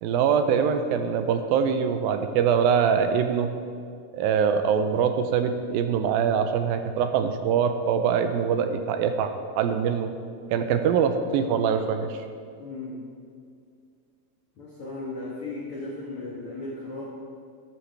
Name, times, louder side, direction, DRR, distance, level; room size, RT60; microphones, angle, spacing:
voice 1, 0.0-3.5 4.1-10.1 10.5-12.2, right 7 dB, 80° right, 7 dB, 2.4 m, -23 dB
voice 2, 12.6-13.0 14.6-17.0, left 2 dB, 55° left, -5 dB, 1.6 m, -36 dB
13.5 x 10.0 x 3.3 m, 2.2 s
omnidirectional pair, 4.2 m